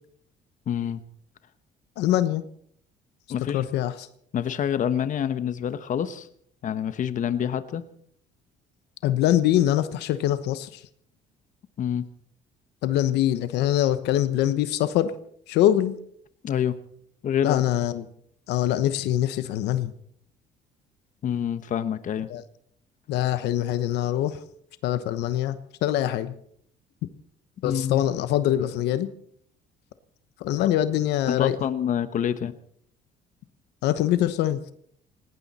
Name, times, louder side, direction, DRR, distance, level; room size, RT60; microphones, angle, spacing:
voice 1, 0.7-1.0 3.3-3.6 4.3-6.3 6.6-7.8 11.8-12.1 16.4-16.8 17.2-17.6 21.2-22.3 27.6-28.0 31.3-32.6, left 9 dB, 50° left, 12 dB, 1.1 m, -27 dB
voice 2, 2.0-2.4 3.5-4.1 9.0-10.8 12.8-15.1 15.5-15.9 17.4-18.0 18.5-19.9 22.3-22.4 23.1-24.4 24.8-26.3 27.6-29.1 30.4-31.6 33.8-34.7, left 12 dB, 85° left, 12 dB, 1.1 m, -23 dB
18.5 x 18.0 x 4.2 m, 0.64 s
cardioid pair, 110°, 17 cm